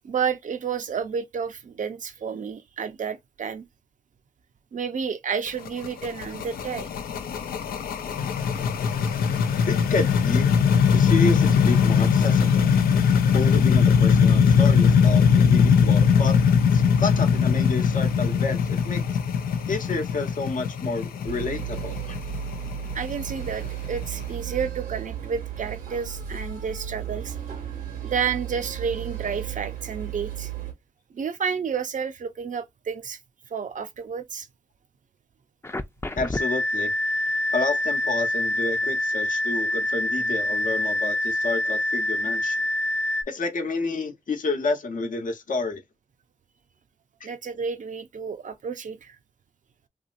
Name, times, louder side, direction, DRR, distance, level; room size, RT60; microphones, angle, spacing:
voice 1, 0.0-3.7 4.7-6.9 22.9-27.4 28.0-30.5 31.1-33.2 33.5-34.5 47.2-49.2, right 6 dB, 60° right, 0.6 m, -30 dB
sound 1, 5.5-24.2, left 6 dB, 85° left, 0.5 m, -20 dB
voice 2, 9.7-10.5 10.9-12.7 13.3-16.4 16.7-19.2 19.7-22.2 36.2-36.9 37.5-42.6 43.3-45.8, left 3 dB, 65° left, 0.9 m, -29 dB
sound 2, 21.2-30.7, right 10 dB, 85° right, 1.1 m, -34 dB
sound 3, 35.6-43.2, left 1 dB, 15° left, 0.5 m, -26 dB
2.9 x 2.7 x 2.5 m
supercardioid pair, 45°, 15 cm